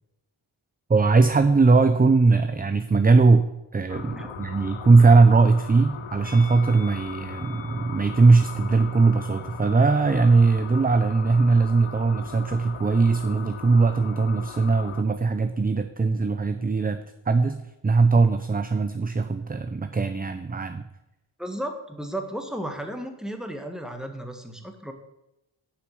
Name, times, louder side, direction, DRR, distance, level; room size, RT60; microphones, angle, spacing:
voice 1, 0.9-3.5 3.7-17.0 17.3-17.6 17.8-20.8, right 3 dB, 20° right, 9 dB, 0.5 m, -20 dB
sound 1, 3.9-15.0, left 8 dB, 80° left, 0.8 m, -39 dB
Musical instrument, 6.2-11.5 11.7-11.9, left 5 dB, 15° left, 1.5 m, -50 dB
voice 2, 21.4-24.9, right 1 dB, ahead, 5 dB, 1.5 m, -34 dB
8.4 x 5.9 x 7.9 m, 0.90 s
wide cardioid pair, 90°, 47 cm